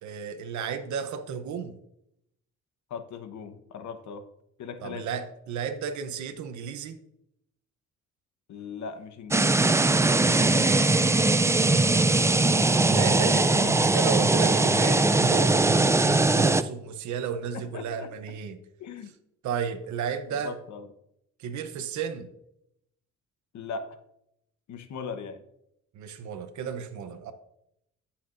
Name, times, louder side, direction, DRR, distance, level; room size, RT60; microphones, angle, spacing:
voice 1, 0.0-1.8 4.8-7.0 10.2-12.0 12.9-18.6 19.4-20.6 21.4-22.3 25.9-27.3, right 7 dB, 70° right, 7 dB, 0.9 m, -34 dB
voice 2, 2.9-4.2 4.6-5.1 8.5-9.6 13.6-13.7 17.5-18.1 18.8-19.1 20.4-20.9 23.5-24.0 24.7-25.4, left 5 dB, 70° left, 8 dB, 1.1 m, -38 dB
sound 1, 9.3-16.6, right 2 dB, 10° right, 0.4 m, -21 dB
14.5 x 5.9 x 2.6 m, 0.78 s
cardioid pair, 90°, 30 cm